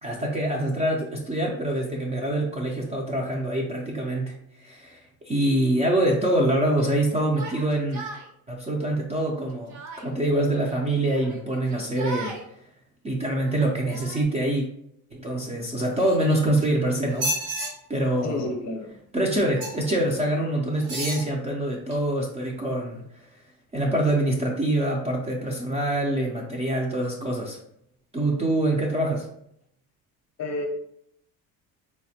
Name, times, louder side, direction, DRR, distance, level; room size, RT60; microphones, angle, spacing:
voice 1, 0.0-5.0 5.2-8.0 8.5-12.3 13.0-14.7 15.1-17.3 17.9-18.5 19.1-23.0 23.7-27.6 28.1-29.3, right 1 dB, 20° right, -1 dB, 0.3 m, -25 dB
Yell, 7.3-8.3 9.2-10.1 11.1-12.5 13.3-14.2, right 3 dB, 50° right, 0.7 m, -39 dB
sound 1, 16.0-16.7 17.1-17.7 19.6-19.9 20.8-21.3 21.9-22.0, right 1 dB, 80° right, 1.5 m, -31 dB
voice 2, 18.2-18.9 30.4-30.7, left 2 dB, 45° left, 4 dB, 0.6 m, -30 dB
4.0 x 2.1 x 2.7 m, 0.72 s
cardioid pair, 135°, 38 cm